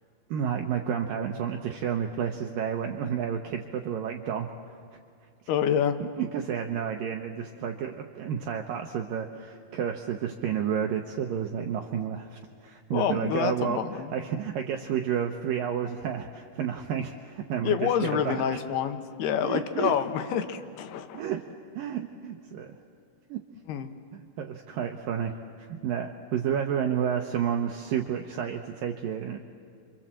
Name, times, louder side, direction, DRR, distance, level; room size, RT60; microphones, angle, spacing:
voice 1, 0.3-4.5 6.2-18.5 19.4-19.9 21.1-21.4 21.8-22.8 23.3-23.4 24.1-29.4, right 8 dB, 80° right, 3 dB, 2.0 m, -31 dB
voice 2, 5.5-6.0 12.9-14.1 17.6-21.2 23.7-23.9, left 8 dB, 70° left, 8 dB, 2.9 m, -27 dB
29.0 x 25.0 x 7.5 m, 2.3 s
omnidirectional pair, 5.2 m